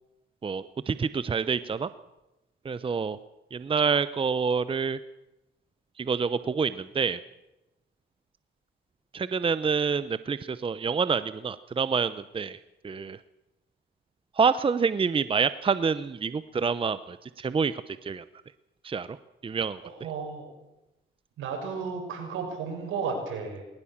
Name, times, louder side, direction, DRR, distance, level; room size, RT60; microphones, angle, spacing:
voice 1, 0.4-1.9 2.6-3.2 3.5-5.0 6.0-7.2 9.1-12.6 12.8-13.2 14.4-18.2 18.8-19.2 19.4-19.8, right 5 dB, 25° right, 14 dB, 0.7 m, -27 dB
voice 2, 19.8-20.5 21.4-23.6, right 5 dB, 80° right, 3 dB, 6.3 m, -33 dB
20.0 x 19.0 x 7.3 m, 0.95 s
cardioid pair, 90°, 20 cm